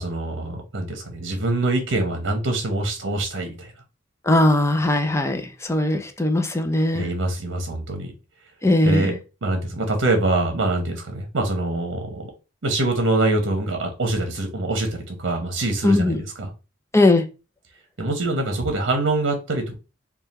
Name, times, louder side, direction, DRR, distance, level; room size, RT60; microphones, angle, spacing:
voice 1, 0.0-3.7 6.9-8.1 8.8-9.1 9.4-12.3 12.6-16.5 18.0-19.7, right 2 dB, 75° right, 0.8 m, -24 dB
voice 2, 4.3-7.1 8.6-9.2 15.8-16.2 16.9-17.3, left 1 dB, 15° left, 0.5 m, -19 dB
3.6 x 2.3 x 4.1 m
head